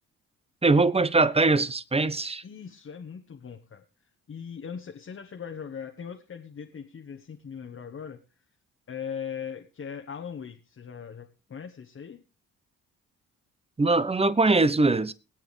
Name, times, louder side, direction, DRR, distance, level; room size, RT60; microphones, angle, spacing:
voice 1, 0.6-2.4 13.8-15.1, right 3 dB, 15° right, 0.9 m, -22 dB
voice 2, 2.4-3.8 4.3-8.2 8.9-12.2, left 7 dB, 35° left, 1.3 m, -39 dB
21.0 x 9.0 x 3.3 m
hypercardioid pair, 45°, 36 cm